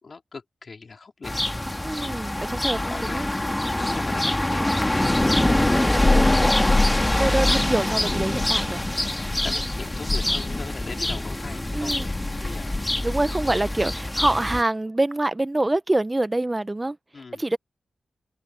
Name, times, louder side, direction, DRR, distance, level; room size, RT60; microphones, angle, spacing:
voice 1, 0.0-1.4 2.8-3.4 3.8-5.7 8.9-12.8 17.1-17.4, left 4 dB, 50° left, 3.6 m, -40 dB
sound 1, 1.2-14.6, left 1 dB, 15° left, 1.8 m, -24 dB
voice 2, 1.8-3.2 4.4-4.7 6.1-6.6 7.2-8.8 11.7-12.1 13.0-17.0 17.4-17.6, right 2 dB, 20° right, 0.4 m, -25 dB
Thunder, 5.0-13.5, left 2 dB, 30° left, 0.9 m, -28 dB
open air
wide cardioid pair, 115°, 0 cm